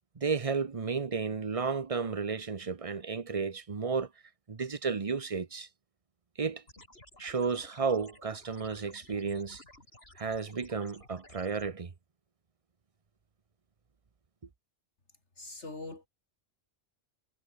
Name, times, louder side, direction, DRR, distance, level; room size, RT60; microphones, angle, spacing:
voice 1, 0.2-4.1 4.5-5.7 6.4-6.6 7.2-9.6 10.2-11.9, right 5 dB, 30° right, 0.9 m, -33 dB
sound 1, 6.7-11.7, left 1 dB, 60° left, 6.8 m, -55 dB
voice 2, 15.4-16.1, left 2 dB, 75° left, 3.8 m, -42 dB
omnidirectional pair, 1.2 m